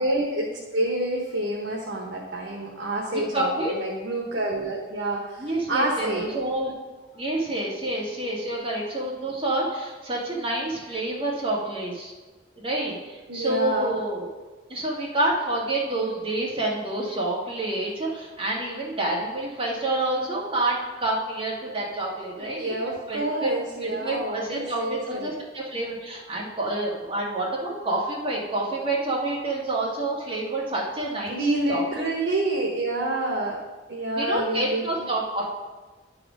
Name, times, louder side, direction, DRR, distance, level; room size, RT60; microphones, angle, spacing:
voice 1, 0.0-6.3 13.3-14.0 22.4-25.3 31.3-33.6 33.9-34.8, right 1 dB, 80° right, -2 dB, 1.2 m, -28 dB
voice 2, 3.1-3.7 5.4-6.7 7.1-12.1 12.6-14.3 14.7-23.5 23.8-31.4 31.7-31.8 34.2-35.4, right 2 dB, 30° right, -4 dB, 2.0 m, -28 dB
10.5 x 4.9 x 5.2 m, 1.3 s
head